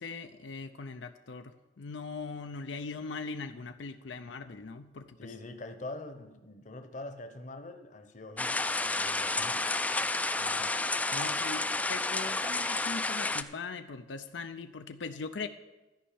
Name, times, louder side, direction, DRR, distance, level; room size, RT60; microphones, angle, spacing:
voice 1, 0.0-5.3 10.4-10.7 11.1-15.5, left 4 dB, 85° left, 8 dB, 0.6 m, -40 dB
voice 2, 5.2-9.7, left 2 dB, 45° left, 8 dB, 0.9 m, -44 dB
sound 1, 8.4-13.4, left 2 dB, 10° left, 0.3 m, -31 dB
13.0 x 5.4 x 8.6 m, 1.1 s
head